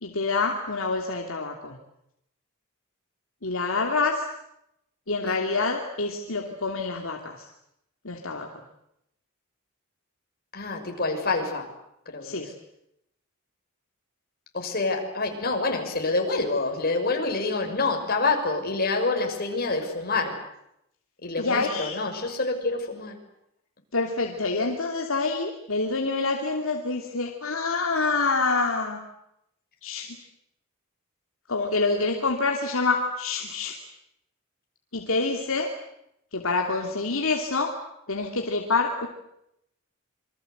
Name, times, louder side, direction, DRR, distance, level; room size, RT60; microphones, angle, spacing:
voice 1, 0.0-1.8 3.4-4.3 5.1-7.5 8.0-8.5 12.2-12.5 21.4-22.0 23.9-29.0 29.8-30.2 31.5-33.8 34.9-35.7 36.3-37.8 38.1-39.1, left 3 dB, 70° left, 2 dB, 2.8 m, -27 dB
voice 2, 10.5-11.7 12.1-12.4 14.5-20.4 21.2-23.1, left 3 dB, 45° left, 3 dB, 6.1 m, -27 dB
28.0 x 24.5 x 8.1 m, 0.78 s
head